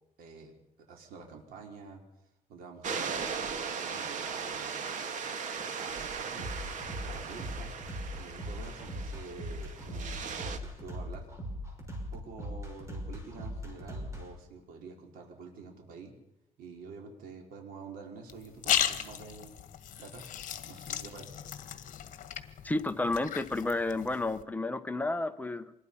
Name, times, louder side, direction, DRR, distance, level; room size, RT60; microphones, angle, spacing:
voice 1, 0.2-0.5 0.9-2.0 2.5-5.0 5.6-6.5 7.0-7.7 8.1-11.3 12.1-16.1 16.6-19.5 20.0-20.2 20.6-21.3, right 4 dB, 80° right, 1 dB, 4.9 m, -48 dB
sound 1, 2.8-10.6, right 6 dB, 55° right, 2.3 m, -38 dB
sound 2, 6.4-14.2, equal, 20° right, 6.3 m, -39 dB
sound 3, 18.3-24.4, left 9 dB, 60° left, 1.9 m, -36 dB
voice 2, 22.6-25.7, left 2 dB, 10° left, 9 dB, 1.0 m, -31 dB
26.5 x 21.5 x 5.7 m, 0.85 s
cardioid pair, 145°, 15 cm